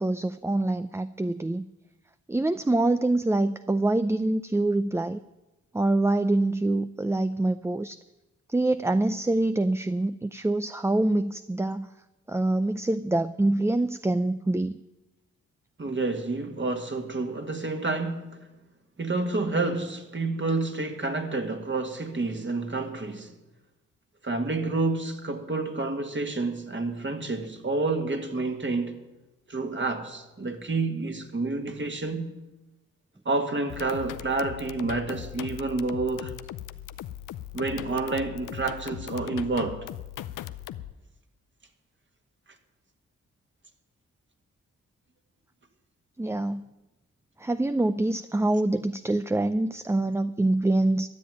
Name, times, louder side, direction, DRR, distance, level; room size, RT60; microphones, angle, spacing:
voice 1, 0.0-1.6 2.3-5.2 5.7-8.0 8.5-11.9 12.3-14.8 46.2-46.7 47.4-51.1, right 2 dB, 10° right, 0.5 m, -25 dB
voice 2, 15.8-18.4 19.0-23.3 24.2-29.0 29.5-32.4 33.3-36.4 37.5-39.9, right 3 dB, 40° right, 2.0 m, -29 dB
sound 1, 33.7-40.9, left 12 dB, 90° left, 0.6 m, -39 dB
13.0 x 7.3 x 9.3 m
supercardioid pair, 50°, 30 cm